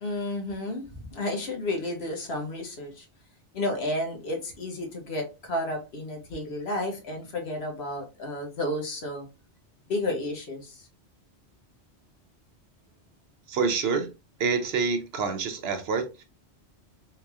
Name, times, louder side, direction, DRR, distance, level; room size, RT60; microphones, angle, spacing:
voice 1, 0.0-3.0 3.5-9.3 9.9-10.9, left 1 dB, 65° left, 1.3 m, -32 dB
voice 2, 13.5-14.1 14.4-16.2, right 5 dB, 65° right, 0.9 m, -27 dB
3.8 x 2.9 x 2.3 m
omnidirectional pair, 1.2 m